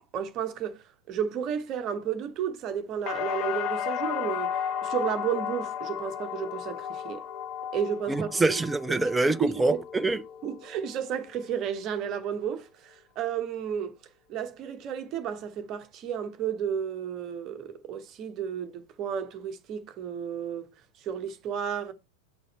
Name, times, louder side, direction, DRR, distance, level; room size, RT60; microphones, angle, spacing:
voice 1, 0.0-4.5 4.8-7.2 7.7-8.6 9.0-9.1 9.4-9.8 10.4-13.9 14.3-20.7 21.0-21.9, right 8 dB, 35° right, 1.0 m, -32 dB
sound 1, 3.1-11.0 11.3-12.0, left 9 dB, 35° left, 0.6 m, -34 dB
voice 2, 8.1-10.2, right 2 dB, 10° right, 0.4 m, -25 dB
7.8 x 4.0 x 4.2 m
figure-of-eight pair, 90°, 0 cm